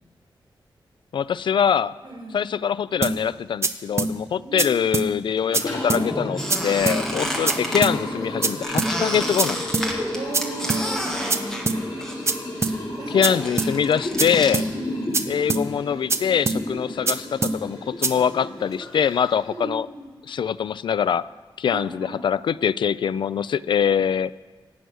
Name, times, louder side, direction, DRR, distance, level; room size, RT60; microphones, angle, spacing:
voice 1, 1.1-2.0 2.3-9.7 13.1-14.7 15.3-19.9 20.3-21.3 21.6-24.3, left 8 dB, 70° left, 17 dB, 0.4 m, -23 dB
voice 2, 2.0-2.4 4.4-4.7 7.1-7.5 10.1-11.9 13.0-13.4 14.3-15.2 16.7-17.1 19.5-20.1 21.6-22.2, right 2 dB, 60° right, -1 dB, 5.3 m, -37 dB
sound 1, 3.0-3.2 3.6-3.7 4.0-4.1 4.6-4.7 4.9-5.1 5.5-5.6 5.9-6.0 6.5-6.6 6.9-7.0 7.5-7.6 7.8-8.0 8.4-8.5 8.8-8.9 9.4-9.5 9.7-9.9 10.3-10.4 10.7-10.8 11.3-11.4 11.7-11.8 12.3-12.4 12.6-12.8 13.2-13.3 13.6-13.7 14.2-14.3 14.5-14.7 15.1-15.2 15.5-15.6 16.1-16.2 16.5-16.6 17.1-17.2 17.4-17.6 18.0-18.1, right 3 dB, 30° right, 0.8 m, -22 dB
Liquid, 5.4-19.5, left 1 dB, 55° left, 6.9 m, -33 dB
Squeak, 6.4-7.8 8.6-12.3 12.6-14.6, equal, 5° left, 2.1 m, -30 dB
24.0 x 9.4 x 6.4 m, 1.4 s
wide cardioid pair, 180°, 9 cm